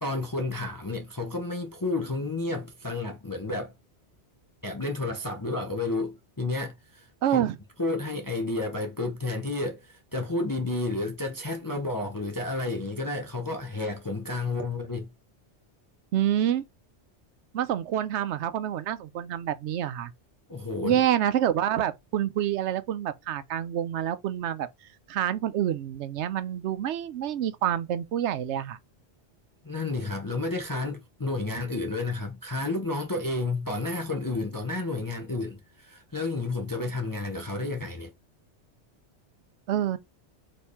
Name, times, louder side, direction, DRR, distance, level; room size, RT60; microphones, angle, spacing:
voice 1, 0.0-3.7 4.6-7.5 7.8-15.1 20.5-21.0 29.6-38.1, left 2 dB, 20° left, 0.6 m, -31 dB
voice 2, 7.2-7.6 16.1-16.6 17.5-20.1 20.8-24.7 25.1-28.8 39.7-40.0, right 10 dB, 85° right, 0.9 m, -27 dB
4.4 x 3.2 x 3.4 m
omnidirectional pair, 1.2 m